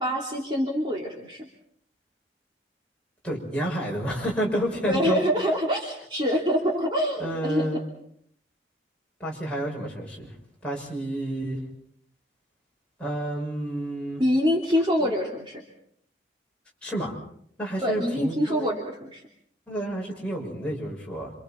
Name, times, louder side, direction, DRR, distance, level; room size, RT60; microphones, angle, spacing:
voice 1, 0.0-1.5 4.9-7.8 14.2-15.6 17.8-19.2, equal, 25° right, -2 dB, 2.9 m, -25 dB
voice 2, 3.2-5.3 7.2-7.8 9.2-10.3 10.6-11.6 13.0-14.2 15.0-15.1 16.8-17.2 17.6-18.7 19.7-21.3, right 1 dB, 5° left, -3 dB, 6.3 m, -30 dB
27.5 x 27.5 x 4.5 m, 0.66 s
head